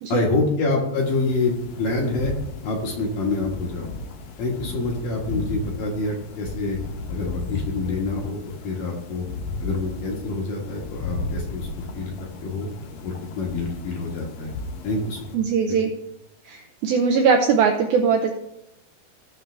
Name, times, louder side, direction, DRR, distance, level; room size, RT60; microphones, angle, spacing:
voice 1, 0.1-2.3 2.6-3.9 4.4-6.8 7.1-9.3 9.6-11.7 11.9-12.1 12.4-12.7 13.0-14.5 14.8-15.3 15.7-15.8, left 3 dB, 60° left, -1 dB, 2.7 m, -26 dB
sound 1, 1.0-15.4, left 3 dB, 75° left, 1.9 m, -35 dB
voice 2, 15.3-15.9 16.5-18.3, right 6 dB, 80° right, 3 dB, 2.2 m, -20 dB
16.0 x 6.5 x 3.3 m, 0.86 s
omnidirectional pair, 5.0 m